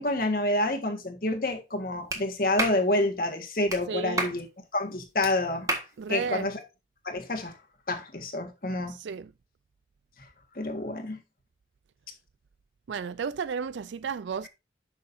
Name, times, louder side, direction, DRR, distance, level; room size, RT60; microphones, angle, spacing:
voice 1, 0.0-4.4 4.7-5.7 6.1-6.6 7.0-7.5 7.9-9.0 10.5-11.2, left 1 dB, 55° left, 1.6 m, -28 dB
Clapping, 2.1-2.2 2.6-2.8 3.7-3.8 4.2-4.4 5.2-5.3 5.7-5.9, right 2 dB, 20° right, 1.5 m, -29 dB
voice 2, 3.9-4.3 6.0-6.5 8.9-9.3 12.9-14.5, right 6 dB, 90° right, 0.4 m, -33 dB
11.0 x 6.2 x 2.7 m
head